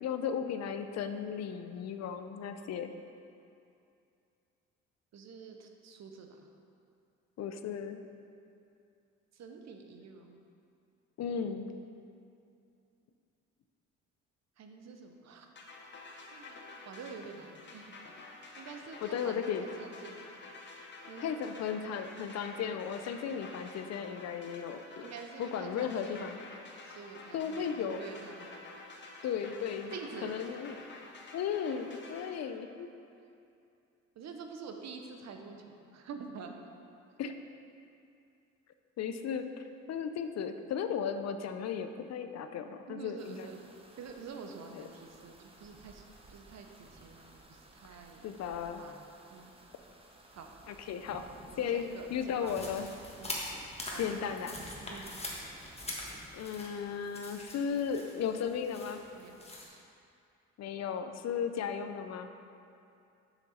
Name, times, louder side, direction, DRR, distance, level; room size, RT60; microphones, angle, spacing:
voice 1, 0.0-2.9 7.4-8.0 11.2-11.7 19.0-19.7 21.2-25.0 25.4-26.4 27.3-28.0 29.2-29.9 30.2-30.8 31.3-32.9 37.2-37.3 39.0-39.4 39.9-43.5 44.7-44.9 48.2-48.8 50.7-51.3 51.6-52.9 54.0-54.5 56.3-59.0 60.6-62.3, left 7 dB, 60° left, 8 dB, 0.5 m, -35 dB
voice 2, 5.1-6.4 9.3-10.4 14.6-15.5 16.3-16.6 16.8-17.9 18.6-20.2 21.1-21.3 25.0-26.2 26.8-28.5 29.9-30.4 34.2-36.6 42.9-43.6 44.0-46.0 46.3-48.2 48.8-49.5 50.3-50.5 51.5-52.7 53.2-53.4 53.9-54.4 54.9-55.1 59.1-59.3 59.7-59.8, right 5 dB, 60° right, 4 dB, 0.8 m, -47 dB
sound 1, 15.6-32.3, left 2 dB, 40° left, 0.9 m, -50 dB
sound 2, 43.2-56.3, right 2 dB, 20° right, 0.8 m, -55 dB
sound 3, 52.4-59.6, left 1 dB, 20° left, 1.2 m, -43 dB
6.5 x 6.0 x 4.2 m, 2.6 s
cardioid pair, 90°, 30 cm